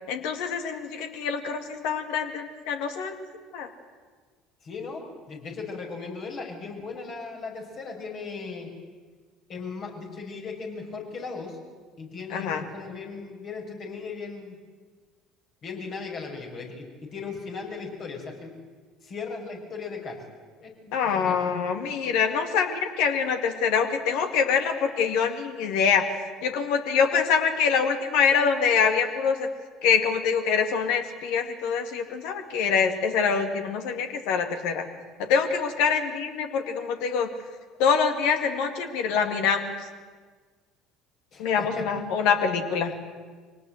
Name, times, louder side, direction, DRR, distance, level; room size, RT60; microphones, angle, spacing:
voice 1, 0.1-3.2 3.5-3.7 12.3-12.6 20.9-26.0 26.4-29.5 29.8-34.8 35.3-37.3 37.8-39.7 41.4-42.9, left 6 dB, 65° left, 7 dB, 2.2 m, -25 dB
voice 2, 4.6-8.7 9.5-11.6 12.0-14.6 15.6-18.5 19.0-20.2 20.6-21.4 41.3-41.8, left 4 dB, 50° left, 1 dB, 6.1 m, -37 dB
24.0 x 18.5 x 7.9 m, 1.5 s
hypercardioid pair, 60°, 0 cm